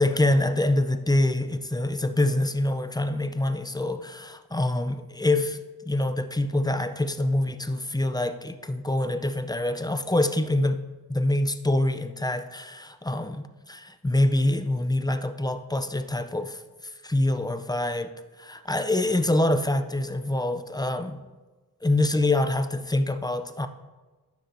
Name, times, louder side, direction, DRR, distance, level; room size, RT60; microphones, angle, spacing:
voice 1, 0.0-5.6 5.9-10.8 11.1-16.6 17.0-18.1 18.4-21.2 21.8-23.7, left 1 dB, 10° left, 10 dB, 0.4 m, -25 dB
10.0 x 5.9 x 2.6 m, 1.3 s
wide cardioid pair, 45°, 38 cm